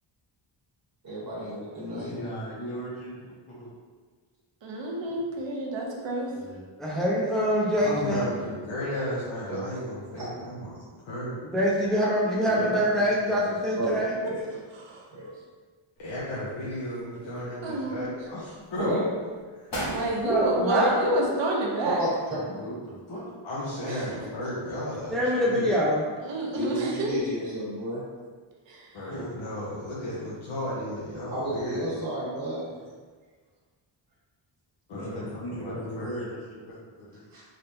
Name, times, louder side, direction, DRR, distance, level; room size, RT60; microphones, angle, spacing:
voice 1, 1.0-2.1 9.5-9.6 10.2-10.3 13.8-14.0 14.2-14.4 15.1-15.3 18.7-19.0 22.0-22.1 26.5-28.0 31.3-32.6 37.3-37.4, right 1 dB, 45° right, -9 dB, 1.2 m, -31 dB
voice 2, 1.9-3.7 5.1-5.2 6.3-6.6 7.9-8.3 12.4-14.0 22.3-23.3 29.1-29.3 32.6-32.9 34.9-37.2, equal, 90° left, -8 dB, 1.4 m, -39 dB
voice 3, 4.6-6.3 14.2-15.1 17.6-18.1 19.9-22.0 23.8-24.1 26.2-27.1 28.7-29.0, right 1 dB, 60° right, -2 dB, 0.8 m, -29 dB
voice 4, 6.8-8.3 11.5-14.2 20.2-21.0 25.1-26.0, equal, ahead, -6 dB, 0.6 m, -24 dB
voice 5, 7.8-10.8 11.0-11.4 16.0-19.0 19.5-19.8 23.4-25.7 28.9-31.8 34.9-35.2 35.6-36.1, left 1 dB, 65° left, -8 dB, 0.8 m, -34 dB
sound 1, 16.0-16.7 17.1-18.0 18.6-18.9 19.4-19.5 19.7-21.6 21.9-22.0, equal, 45° left, 1.1 m, -38 dB
3.9 x 3.2 x 2.7 m, 1.5 s
wide cardioid pair, 135°, 48 cm